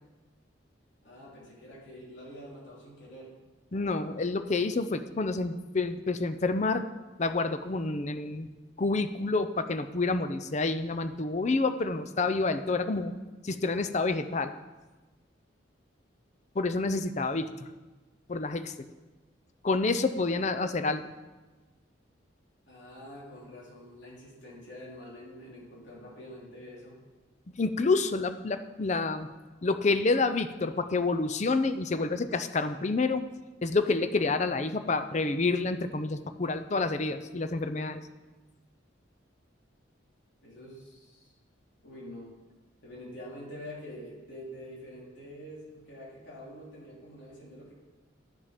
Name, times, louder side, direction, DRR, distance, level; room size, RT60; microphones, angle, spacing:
voice 1, 1.0-3.3 22.7-27.0 40.4-41.3 41.8-42.3 42.8-47.7, equal, 70° left, -4 dB, 3.4 m, -46 dB
voice 2, 3.7-6.9 7.2-8.5 8.8-13.1 13.4-14.5 16.6-17.7 18.3-18.7 19.6-21.1 27.6-29.3 29.6-33.2 33.6-38.0, left 3 dB, 35° left, 10 dB, 0.5 m, -28 dB
10.5 x 7.1 x 5.1 m, 1.2 s
head